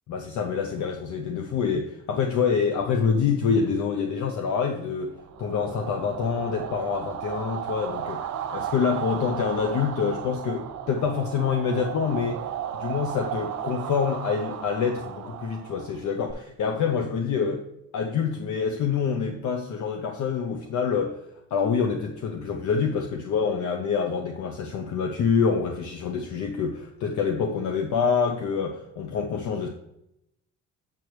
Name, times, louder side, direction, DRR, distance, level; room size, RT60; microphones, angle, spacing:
voice 1, 0.1-8.2 8.5-12.4 12.7-17.7 17.9-21.2 21.5-29.7, left 6 dB, 75° left, 3 dB, 0.9 m, -26 dB
sound 1, 5.2-16.3, right 10 dB, 65° right, 0.9 m, -35 dB
7.5 x 6.9 x 3.1 m, 0.81 s
cardioid pair, 90°, 30 cm